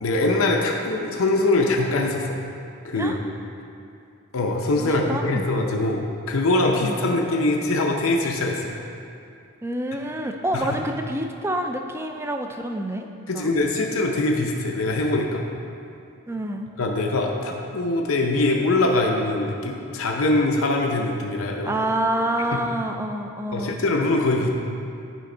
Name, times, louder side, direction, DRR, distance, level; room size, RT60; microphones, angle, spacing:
voice 1, 0.0-2.3 2.8-3.2 4.3-8.7 10.5-10.8 13.3-15.4 16.8-21.7 23.5-24.5, left 2 dB, 80° left, 1 dB, 0.7 m, -23 dB
voice 2, 4.8-5.5 6.8-7.0 9.6-13.1 13.3-13.5 16.3-16.7 21.7-23.8, right 1 dB, 10° right, 4 dB, 0.4 m, -27 dB
10.0 x 5.1 x 3.9 m, 2.5 s
head